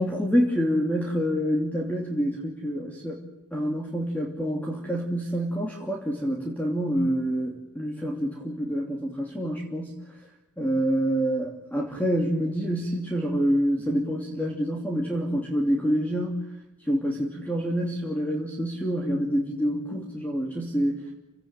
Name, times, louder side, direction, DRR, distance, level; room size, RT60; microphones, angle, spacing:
voice 1, 0.0-3.2 3.5-10.0 10.6-16.5 16.8-21.1, equal, 5° left, -1 dB, 3.0 m, -27 dB
29.0 x 18.0 x 9.1 m, 0.98 s
head